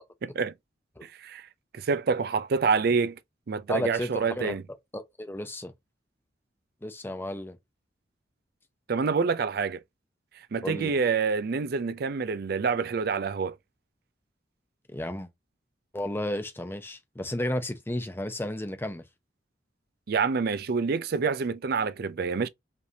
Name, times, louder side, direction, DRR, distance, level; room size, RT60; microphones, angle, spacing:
voice 1, 1.0-1.5 1.7-3.2 3.5-4.6 8.9-9.8 10.5-13.6 20.1-22.5, right 5 dB, 55° right, 0.4 m, -27 dB
voice 2, 3.7-4.6 4.9-5.7 6.8-7.6 10.6-11.0 14.9-15.3 15.9-19.0, left 1 dB, 10° left, 0.7 m, -33 dB
5.0 x 3.3 x 2.7 m
head